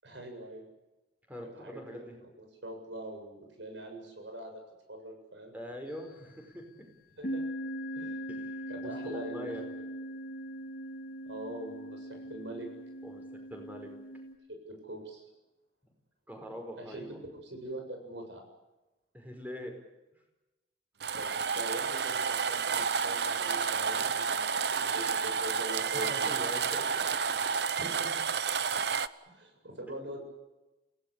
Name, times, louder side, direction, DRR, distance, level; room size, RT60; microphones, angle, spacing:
voice 1, 0.0-0.6 1.5-2.0 2.4-4.6 4.9-5.6 7.2-7.4 7.9-8.2 8.7-9.8 11.3-12.7 14.7-15.3 16.7-17.1 17.4-18.4 21.2-26.4 27.8-28.2 29.2-30.2, right 1 dB, 80° right, 4 dB, 7.5 m, -43 dB
voice 2, 1.3-2.1 5.5-6.9 8.3-9.6 13.0-13.2 13.5-13.9 16.3-17.2 19.1-19.7 20.1-20.2 25.9-26.9, equal, 10° right, 3 dB, 5.1 m, -43 dB
sound 1, 5.9-6.4 7.2-14.3, equal, 50° left, 2.8 m, -40 dB
sound 2, 21.0-29.1, right 6 dB, 60° right, 0.8 m, -30 dB
28.0 x 17.5 x 8.3 m, 1.0 s
head